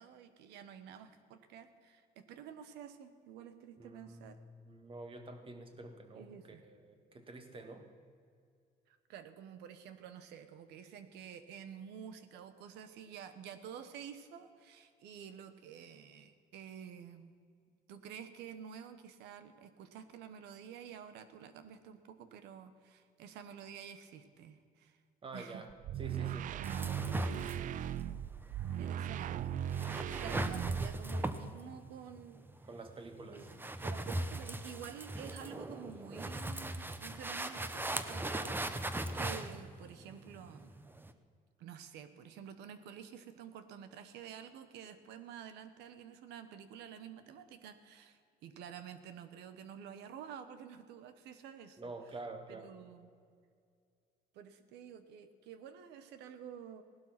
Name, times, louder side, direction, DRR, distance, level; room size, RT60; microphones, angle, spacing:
voice 1, 0.0-4.4 6.1-6.6 8.9-17.3 17.9-25.0 25.3-25.7 26.6-28.2 28.5-29.6 30.0-32.4 33.3-40.8 41.6-51.9 52.5-53.1 54.3-56.8, right 8 dB, 85° right, 11 dB, 1.2 m, -50 dB
voice 2, 3.8-4.3 4.6-6.3 6.6-7.9 25.2-25.7 26.0-26.5 32.7-33.5 51.8-52.7, right 2 dB, 30° right, 6 dB, 1.9 m, -47 dB
sound 1, 25.7-31.2, right 10 dB, 50° right, 0.4 m, -38 dB
sound 2, 26.6-41.1, right 1 dB, 10° right, 0.8 m, -39 dB
17.5 x 12.0 x 5.9 m, 2.2 s
cardioid pair, 110°, 17 cm